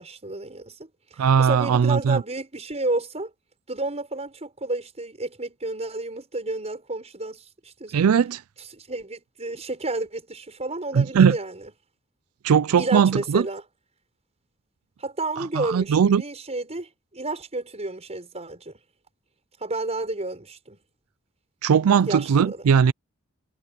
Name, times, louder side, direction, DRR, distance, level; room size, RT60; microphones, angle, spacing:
voice 1, 0.0-3.3 3.7-8.0 8.6-11.7 12.8-13.6 15.0-18.8 19.6-20.8 22.1-22.7, right 2 dB, 30° right, 5.9 m, -31 dB
voice 2, 1.2-2.2 7.9-8.4 10.9-11.3 12.4-13.4 15.6-16.2 21.6-22.9, right 7 dB, 90° right, 0.4 m, -19 dB
head